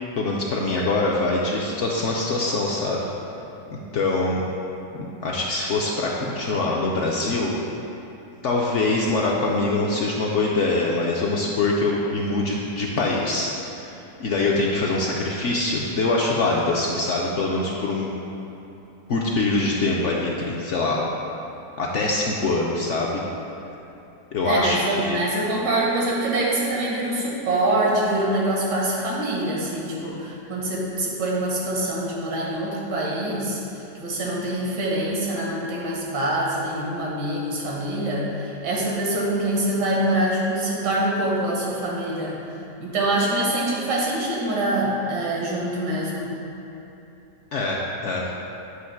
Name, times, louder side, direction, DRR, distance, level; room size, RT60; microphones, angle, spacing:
voice 1, 0.2-3.1 3.7-4.4 4.9-7.5 8.4-13.5 14.2-18.1 19.1-21.0 21.8-23.2 24.3-25.2 47.5-48.2, left 2 dB, 65° left, -3 dB, 0.7 m, -24 dB
voice 2, 24.4-42.4 42.8-46.3, right 1 dB, 90° right, -4 dB, 1.8 m, -25 dB
7.9 x 3.0 x 5.7 m, 2.9 s
omnidirectional pair, 1.8 m